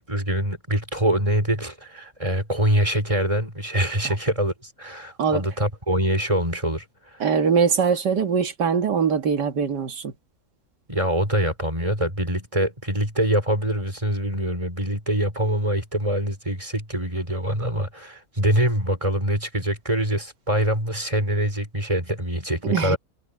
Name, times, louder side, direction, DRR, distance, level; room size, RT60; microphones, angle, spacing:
voice 1, 0.1-6.8 10.9-23.0, right 1 dB, 20° right, 4.6 m, -24 dB
voice 2, 7.2-10.1 22.6-23.0, right 6 dB, 85° right, 2.3 m, -22 dB
omnidirectional pair, 1.8 m